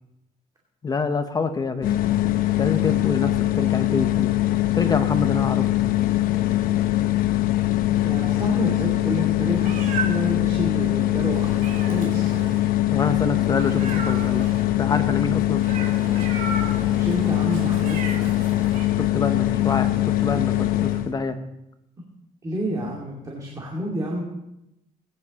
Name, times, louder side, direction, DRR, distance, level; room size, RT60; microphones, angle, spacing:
voice 1, 0.8-1.9 2.6-4.3 4.7-5.7 12.9-14.5 14.8-15.6 19.0-21.4, left 4 dB, 25° left, 8 dB, 0.9 m, -26 dB
sound 1, 1.8-21.1, left 15 dB, 75° left, 0.9 m, -22 dB
voice 2, 8.0-12.5 16.9-18.3 22.4-24.2, right 1 dB, 25° right, -2 dB, 2.5 m, -29 dB
Meow, 9.5-10.3 11.3-12.6 13.6-14.6 15.6-18.8, right 4 dB, 65° right, 3.6 m, -34 dB
20.0 x 10.0 x 4.1 m, 0.84 s
cardioid pair, 140°, 15 cm